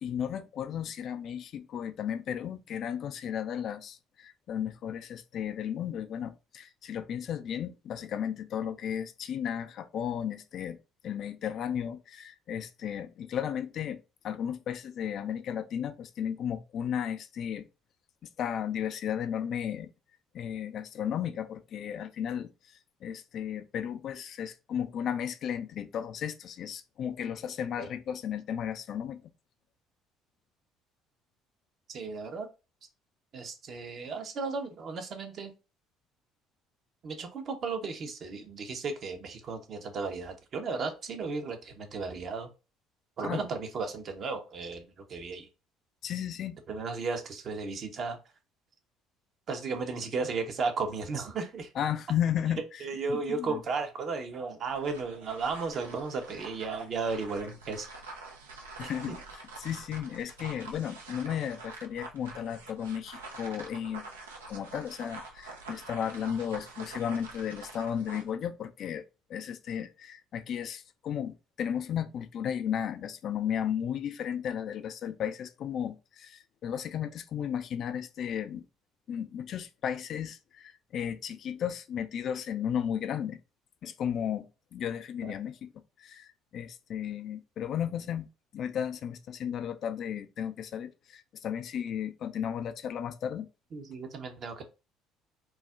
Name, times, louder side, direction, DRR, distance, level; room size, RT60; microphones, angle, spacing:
voice 1, 0.0-10.8 11.0-17.7 18.4-19.9 20.3-29.2 43.2-43.4 46.0-46.6 51.8-52.8 53.1-53.6 58.8-64.0 64.5-69.0 69.3-78.7 79.1-83.4 83.8-85.7 86.0-88.3 88.5-93.5, left 9 dB, 55° left, 0.3 m, -34 dB
voice 2, 31.9-32.5 33.3-35.5 37.0-42.5 43.2-45.5 46.7-48.2 49.5-51.7 52.8-57.9 58.8-59.2 85.2-85.3 93.7-94.6, right 4 dB, 50° right, 0.7 m, -35 dB
sound 1, 54.6-68.3, right 3 dB, 90° right, 0.4 m, -46 dB
2.3 x 2.0 x 3.5 m
hypercardioid pair, 60°, 0 cm